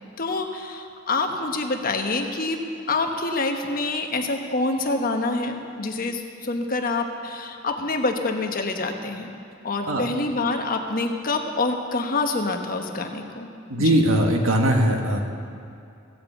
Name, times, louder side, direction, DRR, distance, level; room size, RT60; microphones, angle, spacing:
voice 1, 0.2-9.3 9.6-13.5 13.8-14.0, left 3 dB, 45° left, 4 dB, 1.1 m, -26 dB
voice 2, 13.7-15.2, right 1 dB, 90° right, 2 dB, 1.5 m, -20 dB
15.5 x 7.6 x 7.9 m, 2.5 s
head